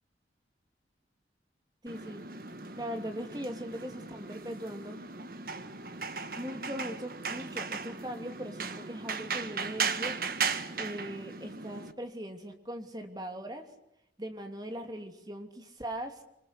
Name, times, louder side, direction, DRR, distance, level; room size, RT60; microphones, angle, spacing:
voice 1, 1.8-2.2 2.8-5.0 6.3-10.2 10.8-13.7 14.2-16.2, equal, 25° right, 5 dB, 2.9 m, -40 dB
sound 1, 1.9-11.9, right 5 dB, 50° right, 1.6 m, -37 dB
27.0 x 25.0 x 8.4 m, 0.80 s
head